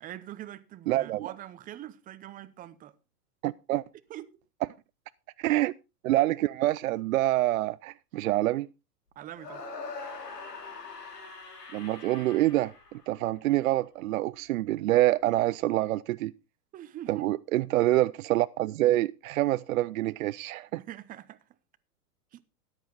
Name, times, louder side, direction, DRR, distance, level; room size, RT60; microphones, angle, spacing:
voice 1, 0.0-2.9 4.1-4.3 9.2-9.6 16.7-17.3 20.8-21.4 22.3-22.4, right 12 dB, 20° right, 0.7 m, -43 dB
voice 2, 0.9-1.3 3.4-3.8 5.4-5.7 6.0-8.7 11.7-16.3 17.1-20.8, right 16 dB, 60° right, 0.5 m, -26 dB
sound 1, 9.4-13.5, left 4 dB, 90° left, 3.2 m, -43 dB
13.5 x 10.0 x 4.0 m
hypercardioid pair, 120°, 47 cm